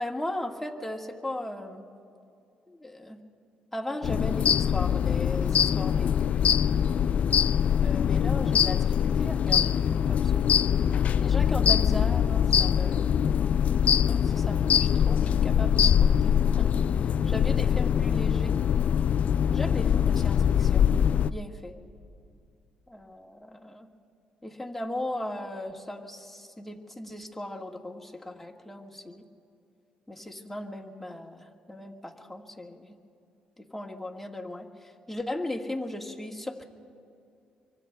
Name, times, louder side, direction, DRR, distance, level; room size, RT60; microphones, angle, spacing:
voice 1, 0.0-1.9 2.7-3.2 3.7-7.0 7.8-10.5 11.2-13.4 14.1-16.7 17.3-18.5 19.5-20.9 21.3-21.8 22.9-23.9 24.4-29.2 30.1-33.0 33.6-36.6, left 1 dB, 5° left, 0 dB, 1.6 m, -37 dB
sound 1, 4.0-21.3, left 8 dB, 55° left, 0.3 m, -23 dB
26.5 x 24.0 x 2.3 m, 2.6 s
cardioid pair, 90°, 3 cm